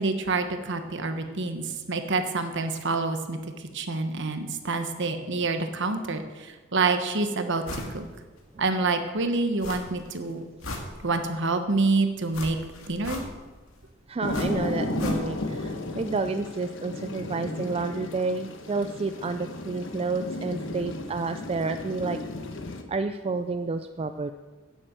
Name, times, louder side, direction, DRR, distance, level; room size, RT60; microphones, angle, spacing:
voice 1, 0.0-8.0 8.6-10.4 11.0-12.6 12.9-13.2, right 3 dB, 60° right, 7 dB, 1.2 m, -27 dB
sound 1, 7.6-8.0 8.4-8.5 9.6-10.1 10.4-11.4 12.3-13.6 14.3-15.6 15.8-15.9, left 2 dB, 85° left, 2.0 m, -38 dB
voice 2, 14.1-22.2 22.9-24.3, right 3 dB, 30° right, 8 dB, 0.4 m, -30 dB
sound 2, 14.2-22.8, left 2 dB, 65° left, 1.2 m, -33 dB
10.5 x 7.5 x 7.9 m, 1.3 s
head